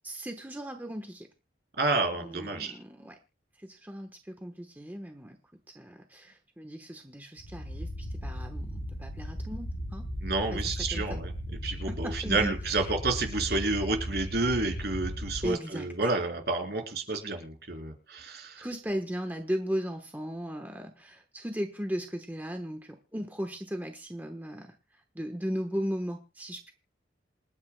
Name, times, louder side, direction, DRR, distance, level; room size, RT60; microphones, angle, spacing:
voice 1, 0.0-1.3 2.2-3.2 3.6-5.4 5.7-10.1 10.5-11.2 11.9-12.9 15.4-15.9 18.6-24.8 25.1-26.7, equal, 10° right, 5 dB, 1.1 m, -37 dB
voice 2, 1.8-2.7 10.2-11.3 11.6-18.6, right 3 dB, 60° right, 3 dB, 3.7 m, -30 dB
sound 1, 7.4-15.5, equal, 85° left, 5.3 m, -36 dB
28.0 x 9.7 x 2.2 m, 0.30 s
head